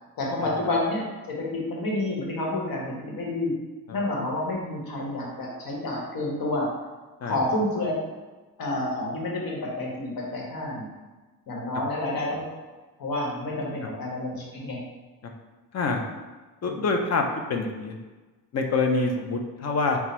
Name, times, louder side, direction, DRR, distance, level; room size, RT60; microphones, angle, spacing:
voice 1, 0.2-3.5 3.9-6.7 7.2-7.9 8.6-10.9 11.5-12.4 13.0-14.8 16.7-16.8, left 2 dB, 70° left, -3 dB, 1.3 m, -29 dB
voice 2, 16.6-17.2 17.5-18.0 18.5-20.0, left 3 dB, 45° left, 3 dB, 0.6 m, -25 dB
4.2 x 2.3 x 4.3 m, 1.2 s
cardioid pair, 130°, 36 cm